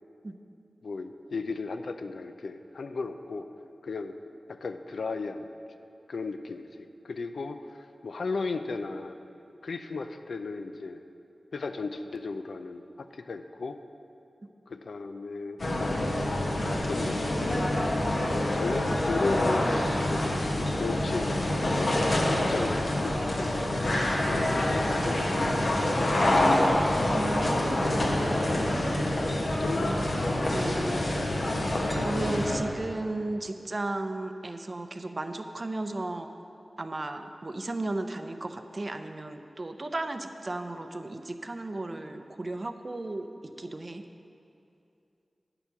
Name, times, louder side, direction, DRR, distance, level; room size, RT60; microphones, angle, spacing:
voice 1, 0.8-3.5 3.8-4.1 4.5-5.5 6.1-7.6 8.0-9.2 9.6-11.0 11.5-13.8 14.7-16.2 16.6-17.2 18.5-21.4 21.8-23.6 24.2-26.7 29.5-30.0, left 3 dB, 90° left, 8 dB, 0.4 m, -35 dB
sound 1, 15.6-32.6, left 1 dB, 70° left, 1.3 m, -26 dB
voice 2, 27.1-28.1 29.1-29.3 29.7-30.2 30.5-31.3 32.0-36.3 36.8-43.3 43.6-44.0, right 2 dB, 45° right, 7 dB, 0.6 m, -35 dB
9.8 x 6.9 x 5.9 m, 2.7 s
wide cardioid pair, 70°, 0 cm